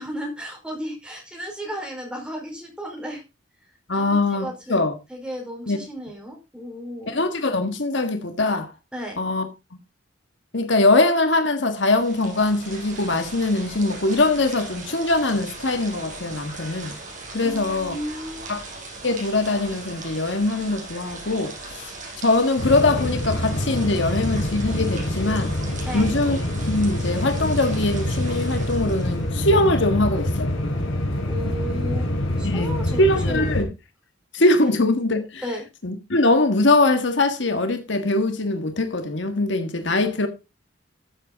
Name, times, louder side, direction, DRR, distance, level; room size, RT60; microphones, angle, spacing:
voice 1, 0.0-3.2 3.9-4.8 5.1-7.2 8.9-9.2 17.4-18.5 25.8-26.1 31.2-32.1 32.4-33.5 35.4-35.6, equal, 5° right, 4.6 m, -34 dB
voice 2, 3.9-4.9 5.7-5.8 7.1-8.7 9.2-9.5 10.5-16.9 17.3-17.9 18.5-18.6 19.0-25.5 25.9-26.4 26.7-30.7 32.4-33.7 34.3-35.4 35.8-40.3, left 2 dB, 65° left, 1.5 m, -22 dB
sound 1, 11.7-29.3, right 3 dB, 40° right, 5.8 m, -39 dB
sound 2, 22.6-33.6, left 1 dB, 85° left, 4.2 m, -26 dB
14.0 x 7.8 x 4.0 m
head